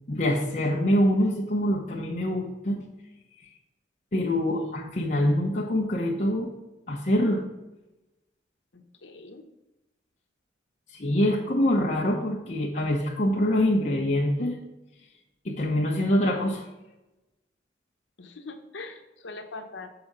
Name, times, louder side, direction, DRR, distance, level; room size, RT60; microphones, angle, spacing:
voice 1, 0.1-2.8 4.1-6.5 6.9-7.4 10.9-14.6 15.4-16.6, left 1 dB, 40° left, -3 dB, 0.8 m, -25 dB
voice 2, 8.7-9.5 18.2-19.9, left 3 dB, 90° left, 6 dB, 0.9 m, -42 dB
6.9 x 4.8 x 5.4 m, 0.99 s
head